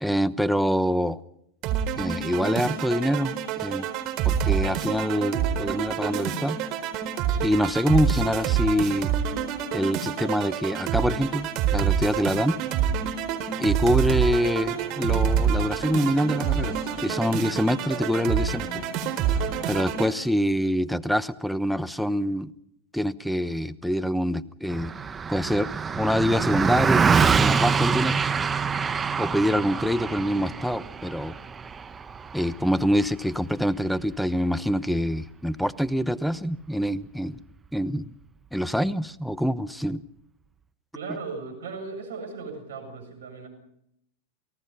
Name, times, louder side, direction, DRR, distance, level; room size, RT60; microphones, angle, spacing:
voice 1, 0.0-1.2 2.0-3.9 4.2-6.6 7.4-9.1 9.7-12.6 13.6-18.8 19.7-22.5 22.9-24.9 25.3-25.7 26.0-28.2 29.2-31.4 32.3-37.4 37.7-38.1 38.5-40.0, equal, ahead, 16 dB, 0.9 m, -25 dB
sound 1, 1.6-20.1, right 8 dB, 50° right, 4.2 m, -27 dB
sound 2, 13.5-19.8, left 6 dB, 35° left, 6.9 m, -44 dB
Car passing by, 24.7-34.3, right 6 dB, 20° right, 1.1 m, -25 dB
voice 2, 40.9-43.5, right 4 dB, 80° right, 7 dB, 7.2 m, -37 dB
29.0 x 18.5 x 5.5 m, 0.74 s
hypercardioid pair, 105°, 0 cm